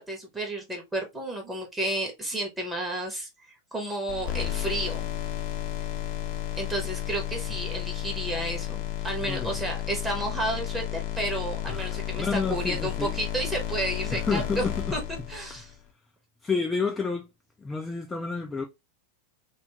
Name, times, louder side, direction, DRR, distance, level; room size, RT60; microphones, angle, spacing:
voice 1, 0.0-3.3 3.7-5.1 6.6-14.6 14.9-15.0 15.3-15.7, right 1 dB, 10° right, 0.8 m, -31 dB
sound 1, 4.1-15.7, left 13 dB, 45° left, 0.7 m, -32 dB
voice 2, 9.3-9.6 11.7-13.1 14.1-14.9 16.4-17.3 17.6-18.6, left 4 dB, 10° left, 0.3 m, -30 dB
2.7 x 2.3 x 2.7 m
figure-of-eight pair, 90°, 0 cm